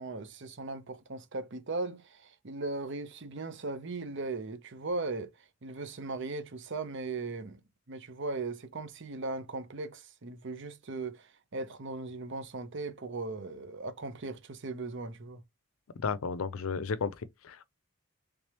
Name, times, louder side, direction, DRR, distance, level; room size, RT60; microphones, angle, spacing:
voice 1, 0.0-15.4, right 3 dB, 55° right, 0.7 m, -38 dB
voice 2, 16.0-17.6, left 5 dB, 70° left, 0.5 m, -33 dB
3.3 x 3.3 x 2.9 m
head